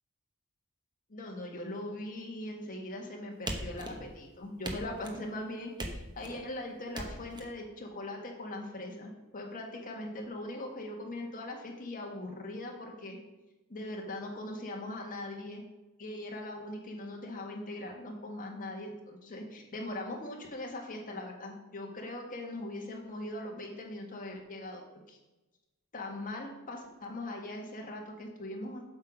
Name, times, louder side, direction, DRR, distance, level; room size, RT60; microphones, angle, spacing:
voice 1, 1.1-13.2 13.7-15.6 16.0-24.8 25.1-25.2 25.9-28.8, left 1 dB, 40° left, 0 dB, 1.7 m, -40 dB
sound 1, 3.5-4.2 4.6-5.3 5.8-6.4 6.9-7.5, right 1 dB, 20° right, 1.0 m, -39 dB
8.0 x 6.6 x 5.3 m, 1.1 s
head